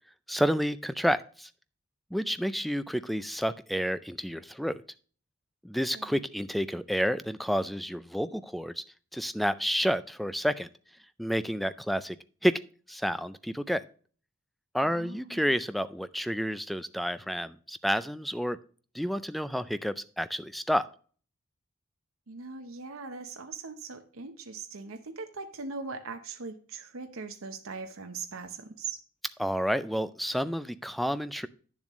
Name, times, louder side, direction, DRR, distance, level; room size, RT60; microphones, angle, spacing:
voice 1, 0.3-1.5 2.1-4.8 5.6-8.8 9.1-10.7 11.2-12.2 12.4-12.6 12.9-13.8 14.7-18.6 18.9-20.9 29.4-31.5, equal, ahead, 14 dB, 0.4 m, -30 dB
voice 2, 14.8-15.5 22.3-29.0, right 4 dB, 70° right, 6 dB, 0.9 m, -40 dB
9.9 x 7.2 x 3.1 m, 0.42 s
head